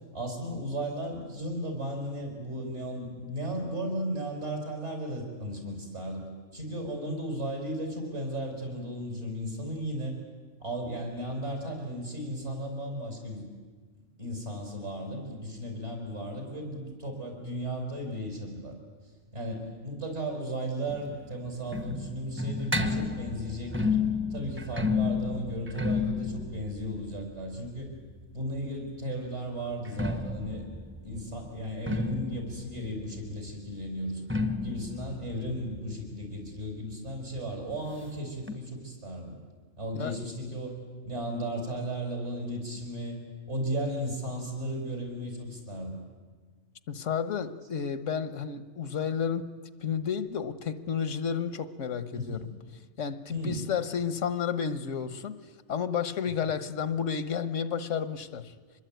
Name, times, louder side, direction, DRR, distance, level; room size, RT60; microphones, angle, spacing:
voice 1, 0.1-10.2 10.6-13.4 14.2-18.7 19.3-24.0 24.3-27.9 28.3-30.6 31.0-34.2 34.6-39.4 39.8-40.8 41.0-43.2 43.5-46.0 52.1-52.4 53.3-53.6, right 1 dB, 65° right, 6.2 m, -35 dB
sound 1, 20.9-28.6 29.7-37.1 37.4-37.5 37.7-37.8 38.5-38.6, left 4 dB, 10° right, 1.0 m, -32 dB
voice 2, 46.9-52.5 53.0-58.5, left 7 dB, 80° left, 1.4 m, -32 dB
25.0 x 21.0 x 9.2 m
omnidirectional pair, 1.3 m